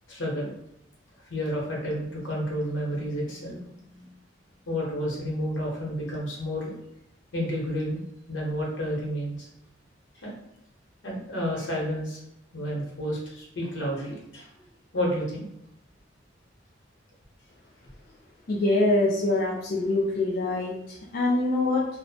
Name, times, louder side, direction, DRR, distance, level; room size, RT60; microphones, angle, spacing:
voice 1, 0.1-0.5 1.3-4.1 4.6-6.8 7.3-8.0 8.3-9.5 10.1-10.3 11.0-12.2 12.5-14.5 14.9-15.5, equal, 80° left, -3 dB, 0.8 m, -30 dB
voice 2, 18.5-21.9, left 2 dB, 50° left, -5 dB, 0.4 m, -24 dB
2.5 x 2.0 x 2.7 m, 0.78 s
head